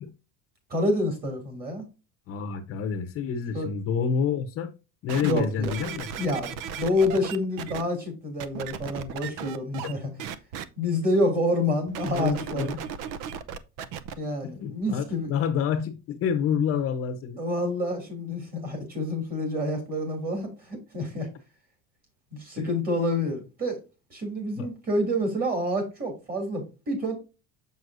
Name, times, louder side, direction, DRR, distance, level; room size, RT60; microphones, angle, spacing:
voice 1, 0.7-1.8 3.5-3.7 5.2-5.7 6.2-10.1 10.8-12.7 14.2-15.3 17.4-21.3 22.3-23.8 24.1-27.1, left 1 dB, 25° right, 2.8 m, -28 dB
voice 2, 2.3-4.7 5.0-6.1 12.1-12.8 14.4-15.0 15.3-17.4 22.6-22.7 24.6-24.7, left 7 dB, 40° left, 0.9 m, -28 dB
sound 1, 5.1-7.8 8.4-9.9 10.2-10.6 11.9-14.1 14.8-14.9, right 7 dB, 60° right, 0.8 m, -36 dB
7.2 x 6.2 x 2.6 m
cardioid pair, 170°, 36 cm